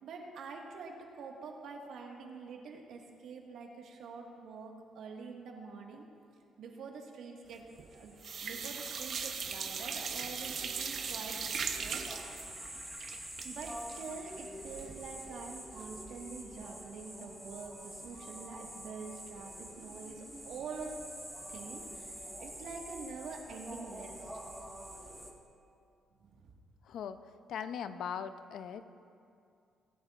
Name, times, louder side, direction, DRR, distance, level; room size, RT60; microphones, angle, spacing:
voice 1, 0.0-6.0 6.6-7.6 7.9-8.1 8.4-12.3 13.4-21.0 21.5-24.2 26.2-26.4, right 4 dB, 75° right, 0 dB, 1.7 m, -46 dB
sound 1, 7.5-7.9 8.2-15.1 15.4-15.5 15.8-15.9, right 6 dB, 60° right, 0.9 m, -39 dB
sound 2, 7.7-25.3, equal, ahead, 1.6 m, -47 dB
voice 2, 26.9-27.2 27.5-28.9, left 8 dB, 75° left, 11 dB, 0.6 m, -39 dB
23.0 x 9.9 x 2.5 m, 2.4 s
cardioid pair, 90°, 0 cm